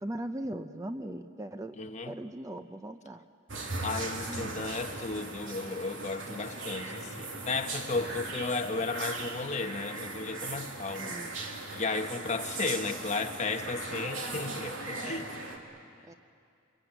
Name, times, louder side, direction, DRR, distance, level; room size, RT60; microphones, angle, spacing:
voice 1, 0.0-1.8 2.1-3.2 4.3-4.5 11.0-11.3 16.0-16.1, right 1 dB, 15° right, 8 dB, 0.6 m, -39 dB
voice 2, 1.8-2.1 3.8-11.2 11.7-15.3, left 3 dB, 35° left, 6 dB, 1.2 m, -34 dB
sound 1, 3.5-15.6, right 2 dB, 75° right, 2.8 m, -38 dB
26.5 x 22.0 x 9.0 m, 2.4 s
head